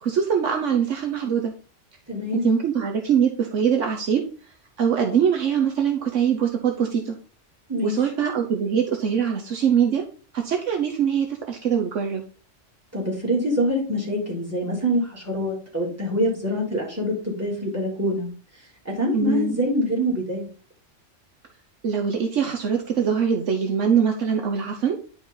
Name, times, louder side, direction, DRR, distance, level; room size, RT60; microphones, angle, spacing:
voice 1, 0.0-1.5 2.3-4.3 4.8-7.2 7.8-10.0 10.3-12.2 19.1-19.6 21.8-25.0, right 7 dB, 70° right, 3 dB, 1.2 m, -23 dB
voice 2, 2.1-2.5 7.7-8.0 12.9-18.3 18.9-20.5, equal, 10° right, -2 dB, 3.4 m, -25 dB
10.5 x 4.8 x 4.0 m, 0.39 s
omnidirectional pair, 1.3 m